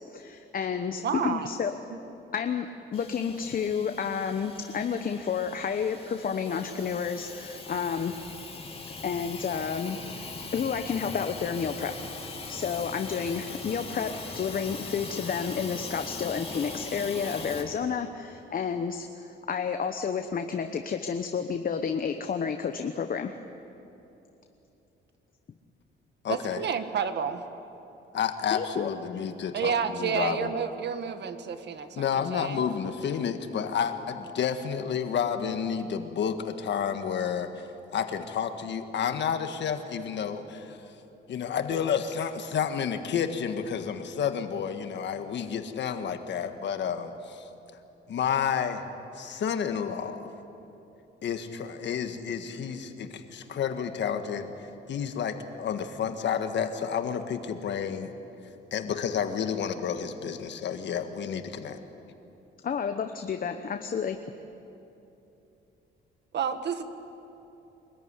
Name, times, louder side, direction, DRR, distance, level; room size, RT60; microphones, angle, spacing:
voice 1, 0.1-1.7 2.3-2.7 2.9-8.1 9.0-10.2 10.5-11.9 12.5-23.4 28.5-28.9 62.6-64.2, left 6 dB, 45° left, 7 dB, 1.0 m, -30 dB
voice 2, 1.0-1.5 26.3-27.4 29.5-32.6 66.3-66.8, right 7 dB, 60° right, 9 dB, 1.5 m, -30 dB
Hiss / Toilet flush / Trickle dribble, 2.9-17.6, left 3 dB, 30° left, 3.1 m, -40 dB
voice 3, 26.2-26.7 28.1-30.5 31.9-40.8 41.3-47.5 48.1-48.8 49.1-50.3 51.2-58.1 58.7-61.8, left 7 dB, 65° left, 7 dB, 1.6 m, -30 dB
24.5 x 14.5 x 9.8 m, 2.9 s
cardioid pair, 90°, 20 cm